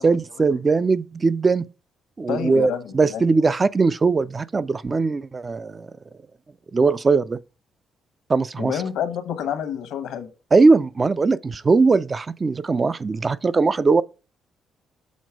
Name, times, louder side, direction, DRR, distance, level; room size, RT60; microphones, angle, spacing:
voice 1, 0.0-1.7 2.2-5.9 6.7-7.4 8.3-8.7 10.5-14.0, right 4 dB, 30° right, 0.3 m, -20 dB
voice 2, 2.3-3.2 8.6-10.3, left 8 dB, 85° left, 1.0 m, -28 dB
6.3 x 4.1 x 4.7 m
cardioid pair, 90°, 0 cm